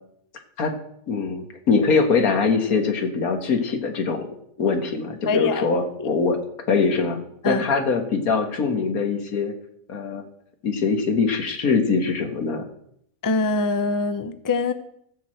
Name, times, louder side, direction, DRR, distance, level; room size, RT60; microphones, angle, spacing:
voice 1, 1.1-4.3 4.6-6.4 6.7-7.2 7.5-9.6 9.9-10.3 10.6-12.7, left 4 dB, 85° left, 5 dB, 1.8 m, -22 dB
voice 2, 5.3-5.7 7.4-7.6 13.2-14.7, left 3 dB, 25° left, 10 dB, 0.4 m, -23 dB
13.5 x 4.8 x 7.6 m, 0.72 s
omnidirectional pair, 1.5 m